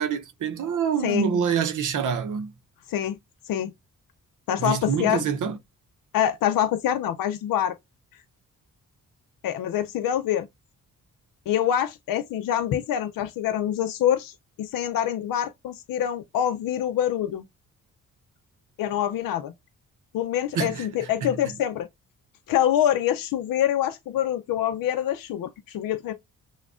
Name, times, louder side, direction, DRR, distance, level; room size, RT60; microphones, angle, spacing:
voice 1, 0.0-2.5 4.6-5.6 20.5-21.6, right 6 dB, 65° right, 0.7 m, -26 dB
voice 2, 4.5-5.2 6.1-7.7 9.4-10.5 11.5-14.3 14.6-17.4 18.8-19.5 20.1-21.9 22.5-26.1, left 10 dB, 80° left, 0.5 m, -25 dB
5.9 x 2.2 x 2.4 m
cardioid pair, 85°, 34 cm